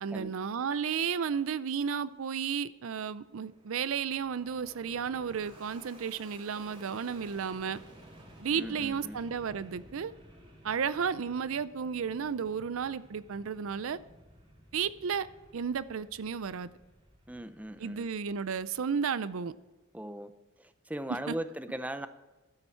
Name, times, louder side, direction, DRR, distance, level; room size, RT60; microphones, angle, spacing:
voice 1, 0.0-7.8 8.4-10.1 10.6-14.0 14.7-15.3 15.5-16.7 17.8-19.5 21.3-21.4, right 6 dB, 70° right, 16 dB, 0.5 m, -33 dB
Fixed-wing aircraft airplane, 3.2-19.7, right 1 dB, 25° right, 3.3 m, -55 dB
voice 2, 8.5-9.2 17.3-18.1 19.9-20.3 20.6-22.1, right 1 dB, 5° right, 11 dB, 0.5 m, -39 dB
12.5 x 9.7 x 4.5 m, 1.1 s
head